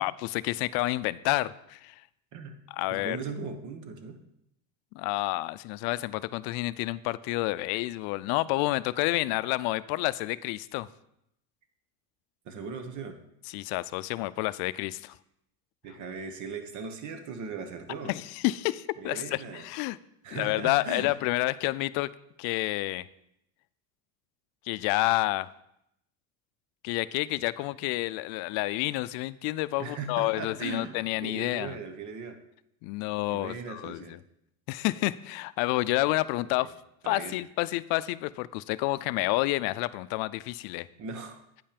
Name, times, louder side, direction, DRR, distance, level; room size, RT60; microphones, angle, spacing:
voice 1, 0.0-1.9 2.7-3.2 4.9-10.9 13.5-15.2 18.0-20.0 20.3-22.1 22.4-23.0 24.7-25.5 26.8-31.8 32.8-34.2 34.7-36.7 37.0-40.9, left 19 dB, 70° left, 17 dB, 0.5 m, -29 dB
voice 2, 2.9-4.2 12.4-13.2 15.8-18.1 19.0-19.7 20.2-21.1 29.8-32.4 33.3-34.2 36.4-36.7 37.0-37.3 41.0-41.4, right 5 dB, 50° right, 7 dB, 1.2 m, -38 dB
9.2 x 5.5 x 5.1 m, 0.79 s
cardioid pair, 145°, 39 cm